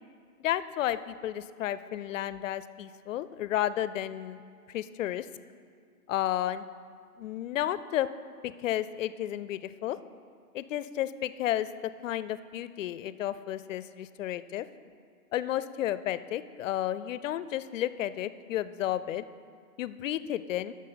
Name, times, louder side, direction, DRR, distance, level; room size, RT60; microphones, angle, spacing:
voice 1, 0.4-4.4 4.7-5.3 6.1-6.7 7.2-8.1 8.4-10.0 10.5-14.7 15.3-19.2 19.8-20.7, left 12 dB, 60° left, 15 dB, 0.5 m, -32 dB
9.2 x 6.3 x 5.7 m, 2.2 s
hypercardioid pair, 155°, 45 cm